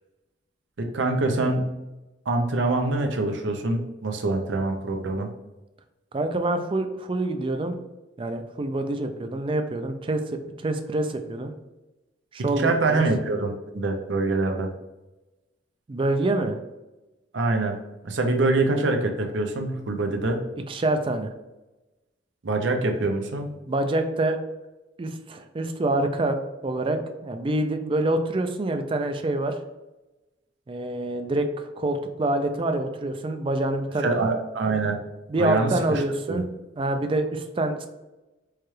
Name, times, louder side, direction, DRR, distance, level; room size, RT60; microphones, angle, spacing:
voice 1, 0.9-1.7 2.3-5.3 12.5-14.7 17.3-17.8 18.0-20.4 22.4-23.5 34.0-35.0 35.4-36.0 36.3-36.4, right 2 dB, 75° right, 4 dB, 0.6 m, -24 dB
voice 2, 6.1-7.8 8.2-10.2 10.6-11.5 12.3-13.0 15.9-16.6 20.7-21.3 23.7-24.4 25.0-26.4 26.6-29.5 30.7-34.3 35.3-36.5 36.8-37.9, right 2 dB, 30° right, 7 dB, 0.4 m, -26 dB
4.6 x 2.3 x 3.1 m, 1.0 s
head